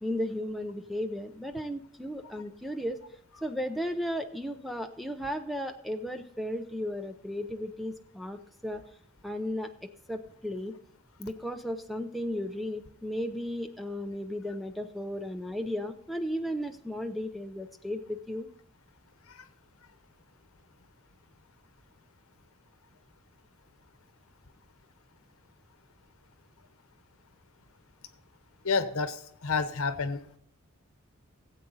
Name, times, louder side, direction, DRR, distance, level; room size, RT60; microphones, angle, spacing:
voice 1, 0.0-3.0 3.4-8.8 9.2-10.7 11.2-18.5, equal, ahead, 4 dB, 0.5 m, -35 dB
voice 2, 28.6-30.4, left 4 dB, 80° left, 11 dB, 1.0 m, -30 dB
17.5 x 8.1 x 4.0 m, 0.67 s
head